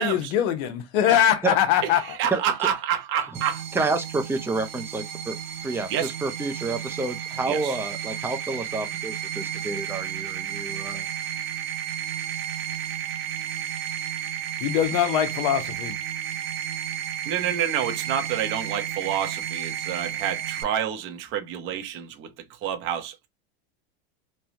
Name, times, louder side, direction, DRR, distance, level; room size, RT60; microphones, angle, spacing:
voice 1, 0.0-2.2 14.6-15.9, left 10 dB, 55° left, 0.7 m, -22 dB
voice 2, 1.8-3.9 5.9-6.1 7.5-7.8 17.3-22.3 22.6-23.3, right 9 dB, 40° right, 0.7 m, -28 dB
sound 1, 3.3-20.6, right 9 dB, 75° right, 0.8 m, -32 dB
voice 3, 3.7-5.4 5.6-11.1, right 3 dB, 10° right, 0.6 m, -29 dB
3.2 x 2.2 x 2.6 m
supercardioid pair, 115°, 30 cm